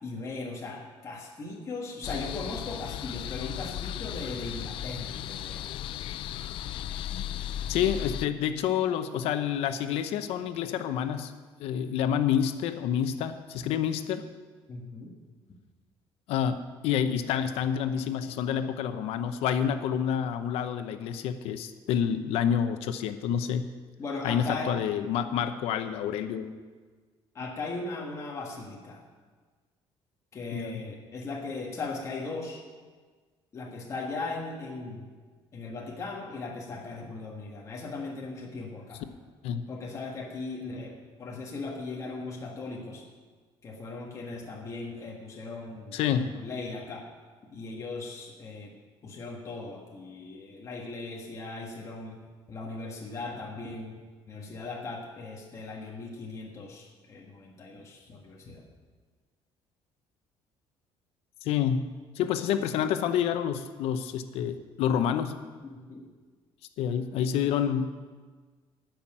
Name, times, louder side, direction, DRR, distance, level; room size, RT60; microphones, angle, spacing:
voice 1, 0.0-5.6 14.7-15.1 24.0-24.7 27.3-29.0 30.3-32.6 33.5-35.1 35.5-39.0 39.7-40.9 41.2-43.0 43.6-47.1 47.5-48.7 49.0-52.2 52.5-54.0 54.3-58.6 65.6-66.0, left 3 dB, 30° left, -1 dB, 1.7 m, -38 dB
sound 1, 2.0-8.3, left 10 dB, 60° left, 0.4 m, -36 dB
voice 2, 7.7-11.3 11.6-14.2 16.3-23.7 24.2-26.5 30.5-30.8 39.4-39.6 45.9-46.3 61.4-61.9 62.2-65.4 66.8-68.0, left 9 dB, 90° left, 9 dB, 0.8 m, -28 dB
11.5 x 5.8 x 8.8 m, 1.5 s
cardioid pair, 155°, 10 cm